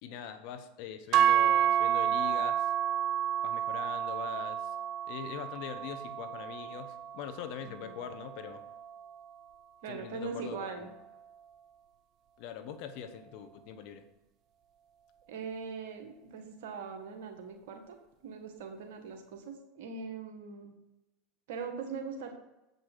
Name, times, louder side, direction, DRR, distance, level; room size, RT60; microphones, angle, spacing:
voice 1, 0.0-2.7 3.4-4.8 5.1-8.6 9.9-10.9 12.4-14.0, left 8 dB, 60° left, 8 dB, 1.0 m, -42 dB
sound 1, 1.1-9.4, right 10 dB, 50° right, 0.5 m, -30 dB
voice 2, 7.6-7.9 9.8-10.9 15.3-18.0 18.2-20.7 21.5-22.4, right 5 dB, 70° right, 3 dB, 1.7 m, -41 dB
7.9 x 5.4 x 6.1 m, 0.95 s
hypercardioid pair, 90°, 0 cm